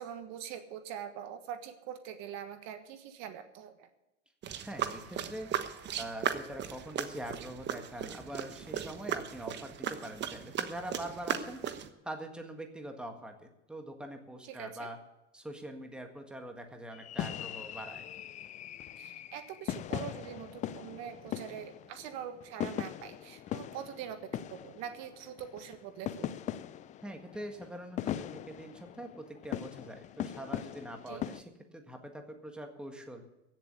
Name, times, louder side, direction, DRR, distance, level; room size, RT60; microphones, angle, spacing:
voice 1, 0.0-3.9 14.4-14.9 19.0-26.3 31.1-31.2, right 9 dB, 45° right, 8 dB, 1.5 m, -43 dB
sound 1, 4.4-11.9, right 9 dB, 30° right, 1.2 m, -37 dB
voice 2, 4.6-5.5 6.0-11.6 12.0-13.3 13.7-15.0 15.3-18.1 27.0-31.4 31.7-33.2, right 1 dB, ahead, 4 dB, 1.7 m, -43 dB
sound 2, 16.9-31.4, left 11 dB, 20° left, 0.4 m, -40 dB
16.0 x 7.4 x 8.0 m, 0.95 s
hypercardioid pair, 115°, 37 cm